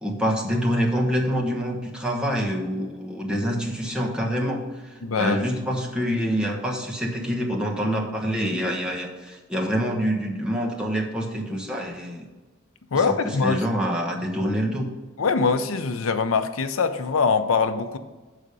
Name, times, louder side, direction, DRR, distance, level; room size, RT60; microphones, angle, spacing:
voice 1, 0.0-12.3 13.1-14.9, equal, 5° right, -2 dB, 1.2 m, -26 dB
voice 2, 5.0-5.4 12.9-13.6 15.2-18.0, left 5 dB, 80° left, 9 dB, 0.6 m, -23 dB
6.3 x 5.0 x 6.8 m, 1.3 s
head